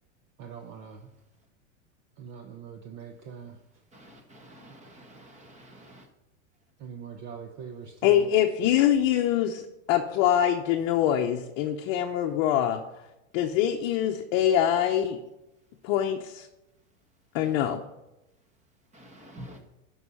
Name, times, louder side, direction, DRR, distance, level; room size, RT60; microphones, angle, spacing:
voice 1, 0.4-1.1 2.2-3.6 6.8-8.3, right 7 dB, 35° right, 5 dB, 0.9 m, -42 dB
voice 2, 3.9-6.1 18.9-19.6, right 1 dB, 15° right, 5 dB, 1.4 m, -48 dB
voice 3, 8.0-9.6 9.9-12.8 13.3-15.2 15.8-16.5 17.3-17.8, left 10 dB, 45° left, 2 dB, 0.9 m, -24 dB
11.0 x 5.6 x 5.6 m, 0.94 s
supercardioid pair, 140°, 41 cm